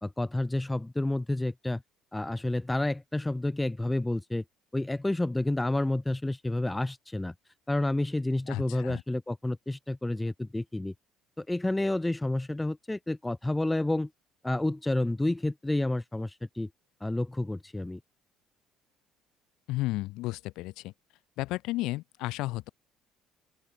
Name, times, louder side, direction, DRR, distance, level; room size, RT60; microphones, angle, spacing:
voice 1, 0.0-1.8 2.1-4.4 4.7-7.3 7.7-10.9 11.4-14.1 14.4-16.7 17.0-18.0, left 2 dB, 10° left, 1.6 m, -30 dB
voice 2, 8.5-9.0 19.7-20.9 21.4-22.7, left 19 dB, 80° left, 0.6 m, -33 dB
open air
cardioid pair, 105°, 0 cm